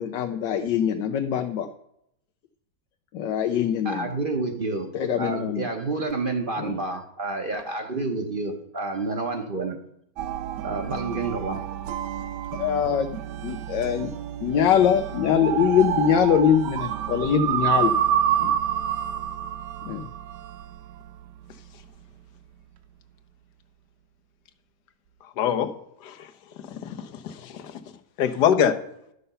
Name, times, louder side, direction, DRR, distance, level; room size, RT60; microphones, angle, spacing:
voice 1, 0.0-1.7 3.1-4.1 4.9-5.6 6.6-6.8 12.6-13.2 13.4-14.1 14.4-17.9 18.4-18.6 19.8-20.1, left 8 dB, 90° left, 5 dB, 1.4 m, -23 dB
voice 2, 3.8-4.9 5.1-9.8 10.6-11.6, right 3 dB, 40° right, 4 dB, 0.9 m, -29 dB
sound 1, 10.2-21.2, right 10 dB, 80° right, 1.2 m, -28 dB
voice 3, 25.2-25.7 26.0-26.3 26.6-27.8 28.2-28.7, left 8 dB, 70° left, 8 dB, 1.5 m, -24 dB
11.5 x 6.8 x 5.5 m, 0.76 s
omnidirectional pair, 1.9 m